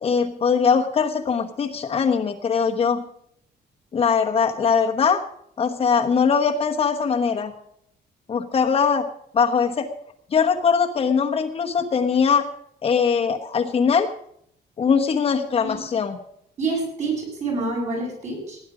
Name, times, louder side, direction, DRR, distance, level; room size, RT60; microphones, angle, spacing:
voice 1, 0.0-3.0 3.9-5.2 5.6-7.5 8.3-9.1 9.3-9.9 10.3-12.5 12.8-14.1 14.8-16.2, left 6 dB, 35° left, 3 dB, 1.2 m, -21 dB
voice 2, 16.6-18.6, right 3 dB, 45° right, -1 dB, 8.0 m, -27 dB
17.5 x 10.5 x 5.0 m, 0.69 s
cardioid pair, 165°, 17 cm